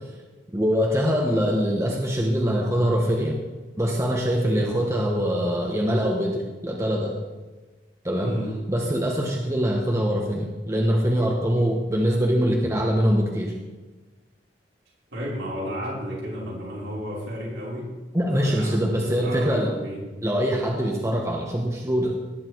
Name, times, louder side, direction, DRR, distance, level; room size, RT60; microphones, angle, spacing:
voice 1, 0.5-3.4 3.8-7.1 8.0-8.4 8.7-13.5 18.1-19.7 20.2-22.2, equal, 15° right, -1 dB, 1.4 m, -23 dB
voice 2, 8.2-8.5 11.5-11.7 15.1-17.8 18.4-20.0, equal, 80° right, -7 dB, 5.5 m, -33 dB
19.0 x 8.9 x 4.7 m, 1.2 s
head